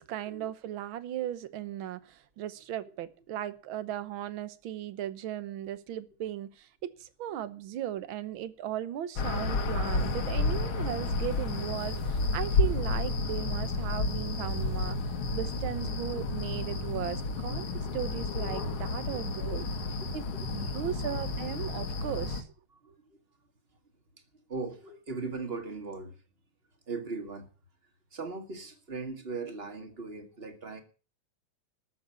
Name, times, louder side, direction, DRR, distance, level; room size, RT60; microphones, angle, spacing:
voice 1, 0.0-15.0 15.3-19.7 20.1-20.2 20.5-22.5, right 11 dB, 70° right, 1.7 m, -37 dB
sound 1, 9.2-22.4, left 3 dB, 75° left, 2.3 m, -31 dB
voice 2, 22.8-23.2 24.5-26.2 26.9-27.5 28.1-30.8, right 3 dB, 30° right, 2.1 m, -39 dB
13.5 x 6.9 x 9.3 m
omnidirectional pair, 2.4 m